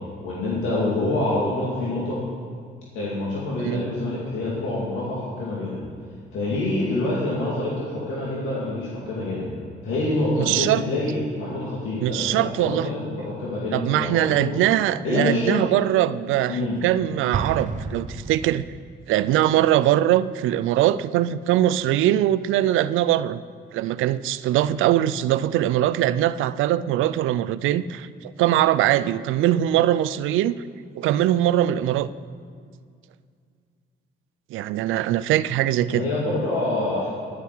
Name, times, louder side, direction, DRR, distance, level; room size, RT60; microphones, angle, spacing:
voice 1, 0.2-2.2 2.9-5.8 6.3-9.5 9.8-14.6 15.0-15.6 16.5-16.8 35.9-37.1, left 2 dB, 90° left, -6 dB, 2.3 m, -26 dB
voice 2, 10.4-10.8 12.0-12.9 13.7-18.6 19.1-23.4 23.7-30.5 30.9-32.1 34.5-36.1, right 13 dB, 85° right, 16 dB, 0.4 m, -22 dB
Explosion, 17.3-19.0, right 5 dB, 40° right, 0.8 m, -31 dB
11.0 x 10.5 x 4.6 m, 2.2 s
cardioid pair, 90°, 20 cm